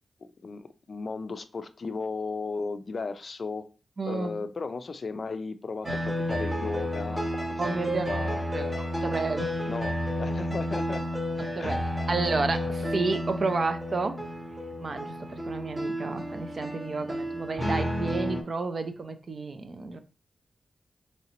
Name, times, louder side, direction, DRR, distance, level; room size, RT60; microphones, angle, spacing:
voice 1, 0.2-3.7 4.1-7.4 7.9-8.5 9.7-11.1 11.6-11.8, left 4 dB, 55° left, 0.4 m, -35 dB
voice 2, 4.0-4.4 7.6-8.1 8.5-8.7 9.0-9.6 11.6-11.8 12.1-14.2 14.8-20.0, right 3 dB, 50° right, 0.4 m, -31 dB
sound 1, 5.8-18.4, equal, 15° right, 0.8 m, -31 dB
3.8 x 3.2 x 2.9 m
cardioid pair, 75°, 0 cm